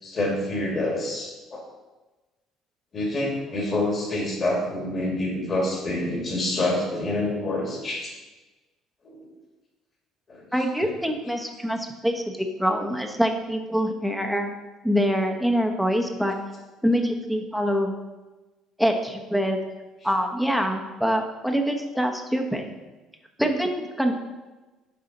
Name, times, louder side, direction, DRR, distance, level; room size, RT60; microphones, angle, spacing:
voice 1, 0.0-1.6 2.9-8.1 9.0-9.2 10.3-10.5 11.0-11.1, left 1 dB, 40° left, -1 dB, 2.0 m, -27 dB
voice 2, 10.5-14.5 14.8-16.3 16.8-17.9 18.8-19.6 20.0-22.7 23.4-24.1, equal, ahead, 3 dB, 0.9 m, -25 dB
6.8 x 4.8 x 4.0 m, 1.2 s
supercardioid pair, 85°, 0 cm